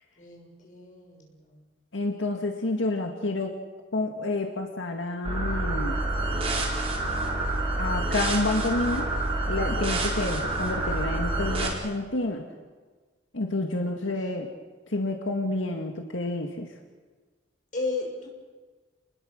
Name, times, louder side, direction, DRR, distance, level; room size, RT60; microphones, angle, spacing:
voice 1, 0.2-1.6 13.8-14.1 17.7-18.3, left 3 dB, 40° left, 0 dB, 6.6 m, -35 dB
voice 2, 1.9-3.5 3.9-6.0 7.8-9.1 9.5-12.5 13.3-14.5 14.9-16.7, left 2 dB, 85° left, 2 dB, 1.9 m, -29 dB
sound 1, 5.2-11.7, right 2 dB, 30° right, 4.4 m, -28 dB
28.5 x 21.0 x 6.5 m, 1.4 s
head